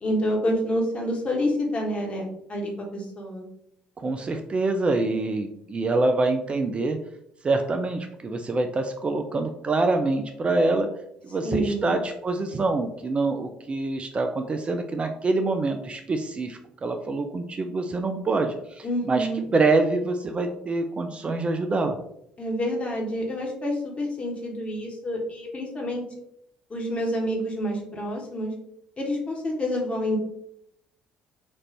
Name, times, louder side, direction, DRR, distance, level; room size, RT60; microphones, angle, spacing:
voice 1, 0.0-3.4 11.4-11.9 18.8-19.4 22.4-26.0 26.7-28.5 29.0-30.2, equal, 30° left, -1 dB, 1.2 m, -28 dB
voice 2, 4.0-7.0 7.4-10.9 11.2-22.0, right 3 dB, 30° right, 6 dB, 0.4 m, -25 dB
4.2 x 2.5 x 3.2 m, 0.75 s
figure-of-eight pair, 50°, 4 cm